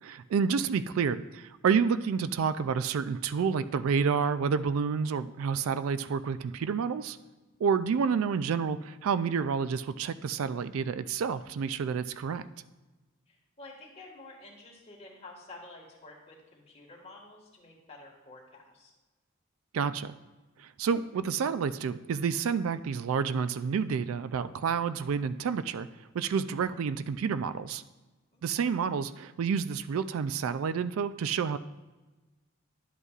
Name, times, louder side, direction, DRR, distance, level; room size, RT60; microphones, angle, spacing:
voice 1, 0.0-7.2 7.6-12.5 19.7-20.1 20.6-25.9 26.1-27.8 28.4-31.6, right 6 dB, 80° right, 14 dB, 0.3 m, -29 dB
voice 2, 13.3-18.9 28.3-28.7, left 2 dB, 30° left, -2 dB, 1.7 m, -50 dB
11.0 x 8.1 x 2.4 m, 1.2 s
head